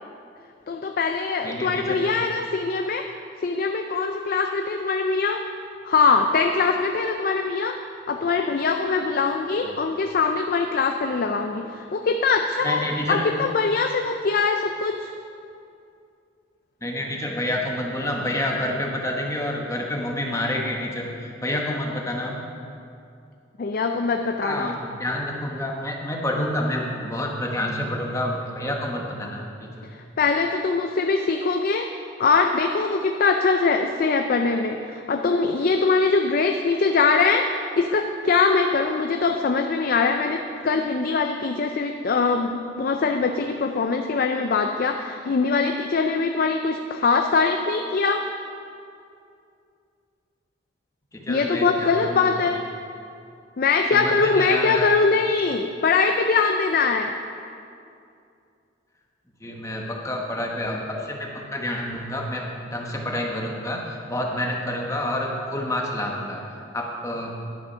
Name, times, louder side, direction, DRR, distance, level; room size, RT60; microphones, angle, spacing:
voice 1, 0.7-3.0 3.4-5.4 5.9-7.8 8.1-15.1 23.6-24.7 29.9-31.9 32.2-37.5 37.8-48.2 51.3-52.6 53.6-57.1, left 4 dB, 50° left, 5 dB, 0.4 m, -22 dB
voice 2, 1.4-2.0 9.6-9.8 12.6-13.2 16.8-22.5 24.4-29.8 51.1-52.5 53.9-54.9 59.4-66.4 66.7-67.3, left 1 dB, 15° left, 0 dB, 1.1 m, -28 dB
11.0 x 6.2 x 5.5 m, 2.5 s
head